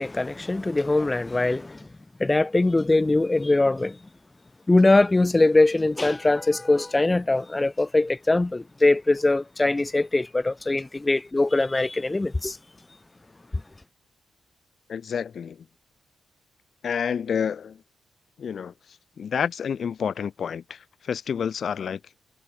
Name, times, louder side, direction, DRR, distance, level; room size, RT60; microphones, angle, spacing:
voice 1, 0.0-1.8 2.2-4.0 4.7-12.6, left 2 dB, 15° left, 1.3 m, -22 dB
voice 2, 14.9-15.6 16.8-17.8 18.4-18.7 19.2-22.0, left 7 dB, 55° left, 3.1 m, -29 dB
wide cardioid pair, 140°, 0 cm